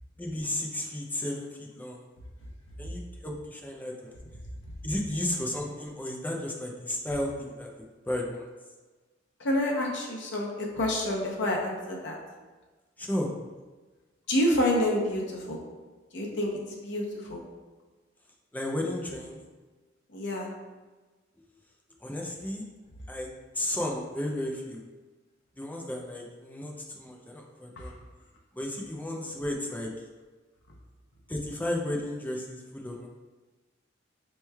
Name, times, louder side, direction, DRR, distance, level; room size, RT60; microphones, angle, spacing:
voice 1, 0.2-2.0 2.8-4.2 4.8-8.5 13.0-13.3 18.5-19.4 22.0-22.6 23.1-23.3 23.5-24.8 25.6-28.0 28.5-29.9 31.3-33.1, left 1 dB, 10° left, 0 dB, 0.4 m, -33 dB
voice 2, 9.4-12.2 14.3-15.6 16.1-17.4 20.1-20.5 27.8-27.9, left 1 dB, 70° left, -1 dB, 0.7 m, -28 dB
4.3 x 3.0 x 2.3 m, 1.3 s
head